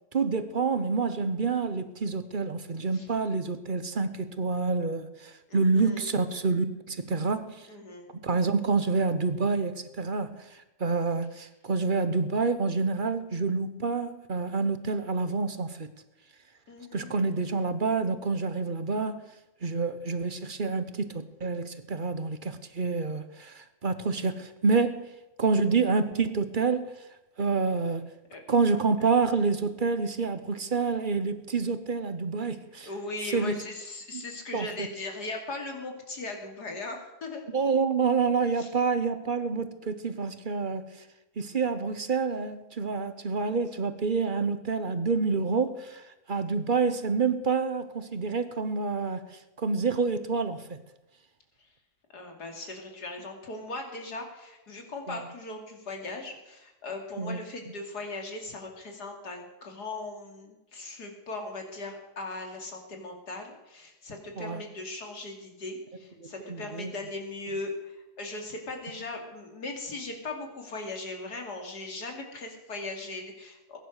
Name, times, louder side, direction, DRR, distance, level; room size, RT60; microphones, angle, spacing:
voice 1, 0.1-7.7 8.2-15.9 16.9-19.2 19.6-25.1 25.4-26.9 27.4-28.1 28.5-32.9 33.3-33.6 34.1-34.2 34.5-34.9 37.5-40.9 41.4-49.3 49.6-50.8 55.1-55.2 57.2-57.4 64.4-64.6 66.2-66.9, right 4 dB, 35° right, 1.0 m, -28 dB
voice 2, 5.5-6.1 7.7-8.1 16.7-17.2 28.3-28.4 32.8-37.4 38.5-38.7 51.6-51.7 52.1-73.8, left 2 dB, 80° left, 3.2 m, -39 dB
21.0 x 10.5 x 6.6 m
omnidirectional pair, 1.7 m